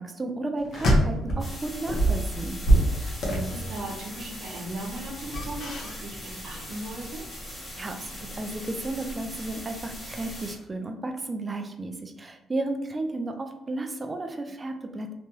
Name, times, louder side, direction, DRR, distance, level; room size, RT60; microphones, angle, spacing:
voice 1, 0.0-2.6 7.8-15.1, right 2 dB, 20° right, 5 dB, 0.3 m, -33 dB
sound 1, 0.6-1.5 1.9-4.0 5.2-6.2 6.4-6.6, right 1 dB, 60° left, 0.8 m, -24 dB
sound 2, 1.4-10.6, left 1 dB, 25° left, 0.9 m, -40 dB
voice 2, 2.9-7.2, right 1 dB, 60° right, 0 dB, 0.8 m, -37 dB
3.0 x 2.2 x 3.0 m, 0.92 s
cardioid pair, 130°, 0 cm